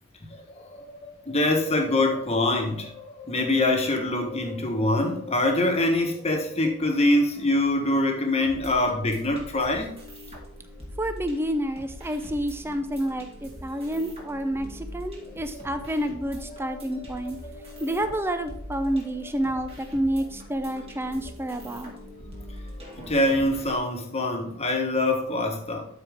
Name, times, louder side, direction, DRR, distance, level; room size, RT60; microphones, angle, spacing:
voice 1, 0.3-10.0 15.5-15.7 16.5-17.9 18.8-18.9 22.8-25.9, left 1 dB, 30° left, 1.4 m, -25 dB
sound 1, 8.4-23.8, equal, 25° right, 2.2 m, -43 dB
voice 2, 11.0-17.4 17.8-21.9, right 1 dB, 10° right, 0.6 m, -29 dB
12.5 x 4.7 x 3.6 m
head